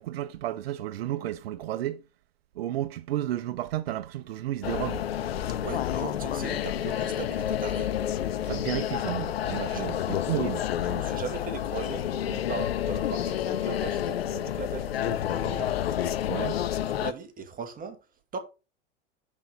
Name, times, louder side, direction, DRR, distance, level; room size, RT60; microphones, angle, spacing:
voice 1, 0.0-2.0 2.6-5.1 8.4-10.7 16.3-16.6, right 13 dB, 80° right, 0.5 m, -32 dB
sound 1, 4.6-17.1, left 11 dB, 85° left, 0.6 m, -29 dB
voice 2, 5.6-7.9 9.6-9.9 10.8-15.7 16.4-16.5 17.0-18.0 18.3-18.4, right 5 dB, 30° right, 1.9 m, -38 dB
6.0 x 5.2 x 5.5 m
hypercardioid pair, 95°, 30 cm